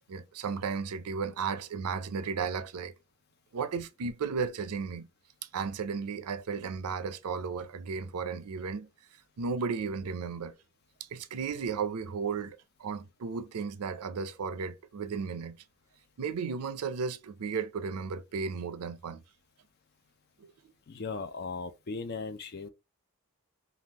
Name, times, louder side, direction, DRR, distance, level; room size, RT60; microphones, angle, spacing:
voice 1, 0.1-2.9 3.5-5.1 5.5-8.9 9.4-10.6 11.1-15.6 16.2-19.2 20.4-20.5, right 5 dB, 85° right, 0.5 m, -34 dB
voice 2, 20.9-22.7, left 4 dB, 45° left, 0.4 m, -37 dB
3.6 x 2.3 x 2.8 m
head